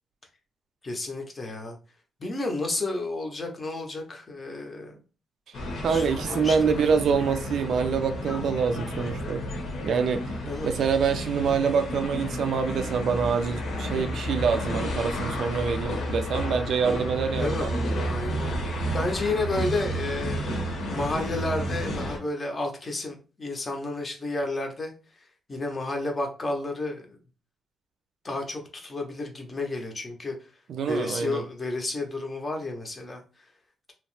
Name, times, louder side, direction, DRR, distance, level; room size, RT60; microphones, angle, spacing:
voice 1, 0.8-1.8 2.2-5.0 5.7-6.7 10.4-10.7 17.4-17.7 18.1-20.4 20.9-24.9 25.5-27.2 28.2-30.4 30.9-33.2, left 2 dB, 25° left, 0.6 m, -31 dB
sound 1, 5.5-22.2, equal, 70° left, 0.8 m, -31 dB
voice 2, 5.8-9.4 9.8-10.2 10.6-17.8 30.7-31.4, right 6 dB, 60° right, 0.3 m, -26 dB
2.9 x 2.0 x 3.0 m
wide cardioid pair, 165°, 0 cm